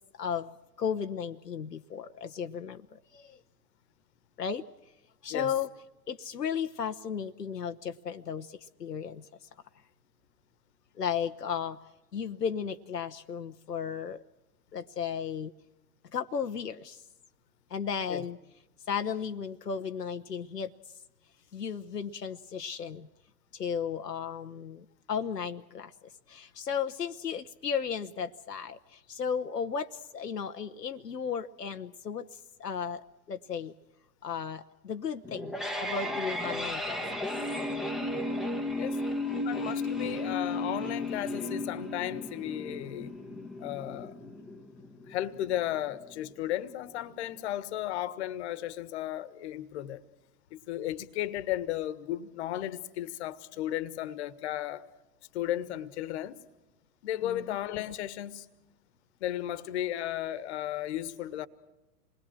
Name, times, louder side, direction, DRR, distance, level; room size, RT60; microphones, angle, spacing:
voice 1, 0.2-0.5 0.8-2.8 4.4-4.6 5.2-5.7 6.1-8.5 8.8-9.2 11.0-11.8 12.1-14.2 14.7-15.5 16.1-17.0 17.7-18.4 18.9-20.7 21.5-23.1 23.6-24.8 25.1-25.9 26.3-28.8 29.1-32.2 32.6-33.0 33.3-33.7 34.2-35.5 35.8-37.0 57.2-57.6, left 7 dB, 80° left, 0.9 m, -34 dB
sound 1, 35.2-46.2, left 2 dB, ahead, 1.2 m, -35 dB
voice 2, 39.4-43.1 43.6-44.1 45.1-50.0 50.5-54.8 55.3-56.4 57.0-58.5 59.2-61.5, left 12 dB, 45° left, 1.5 m, -34 dB
27.5 x 21.0 x 6.1 m
figure-of-eight pair, 105°, 47 cm